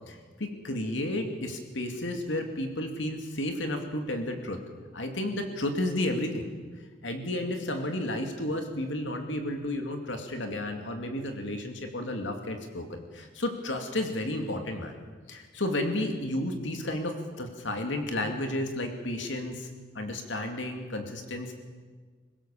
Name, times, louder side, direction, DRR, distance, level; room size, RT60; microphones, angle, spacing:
voice 1, 0.1-4.6 4.9-6.5 7.0-15.0 15.3-19.7 19.9-21.5, left 1 dB, 80° left, 4 dB, 2.5 m, -32 dB
26.0 x 17.0 x 7.2 m, 1.5 s
head